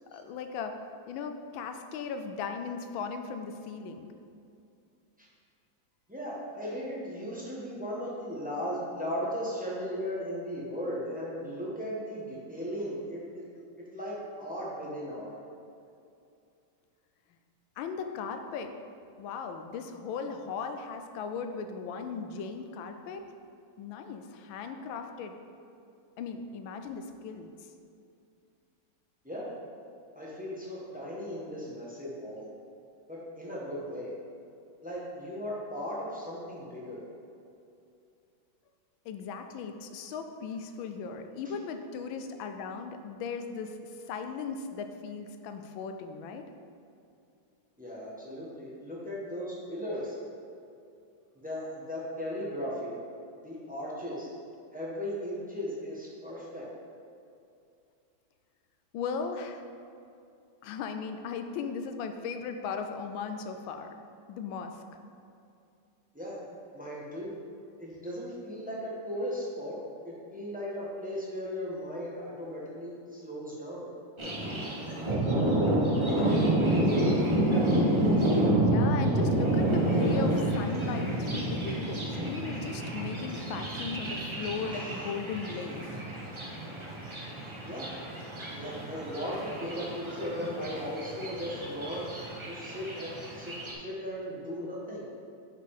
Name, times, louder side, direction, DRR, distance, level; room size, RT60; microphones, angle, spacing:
voice 1, 0.1-0.8 1.1-4.1 17.8-18.7 19.2-23.2 23.8-25.3 26.2-27.5 39.0-46.5 58.9-59.6 60.6-63.9 64.3-64.8 78.5-85.9, left 5 dB, 85° left, 6 dB, 1.4 m, -37 dB
voice 2, 6.1-13.4 13.8-15.3 29.2-29.5 30.1-32.5 33.1-34.1 34.8-37.0 47.8-50.2 51.4-53.0 53.4-54.3 54.7-56.7 66.1-66.4 66.7-67.4 67.8-69.8 70.0-73.9 84.1-84.2 84.7-85.1 87.7-87.9 88.4-92.1 92.5-93.5 93.8-95.0, equal, 5° right, -6 dB, 0.9 m, -37 dB
Thunder, 74.2-93.7, right 1 dB, 30° right, 0.5 m, -29 dB
5.8 x 5.6 x 4.8 m, 2.5 s
omnidirectional pair, 2.1 m